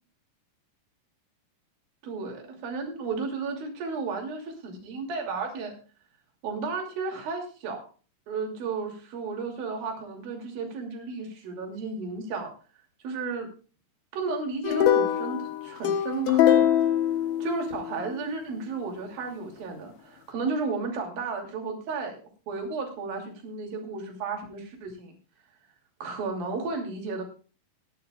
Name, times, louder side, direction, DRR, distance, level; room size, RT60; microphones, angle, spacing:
voice 1, 2.0-5.7 6.4-7.8 8.3-12.5 13.0-13.5 14.1-16.7 17.4-25.1 26.0-27.2, right 4 dB, 55° right, 2 dB, 4.2 m, -33 dB
sound 1, 14.6-18.1, left 10 dB, 70° left, 2.6 m, -23 dB
21.0 x 10.5 x 2.4 m, 0.37 s
omnidirectional pair, 5.4 m